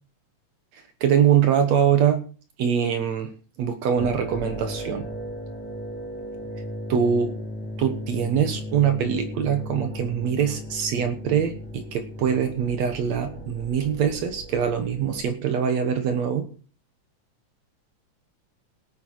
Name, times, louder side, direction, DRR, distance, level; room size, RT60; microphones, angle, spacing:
voice 1, 1.0-2.2 2.6-3.3 3.6-5.0 6.9-7.3 7.8-16.5, right 8 dB, 70° right, 7 dB, 2.4 m, -23 dB
sound 1, 4.0-15.2, equal, 5° left, 3.9 m, -36 dB
17.5 x 9.0 x 4.7 m, 0.39 s
omnidirectional pair, 3.3 m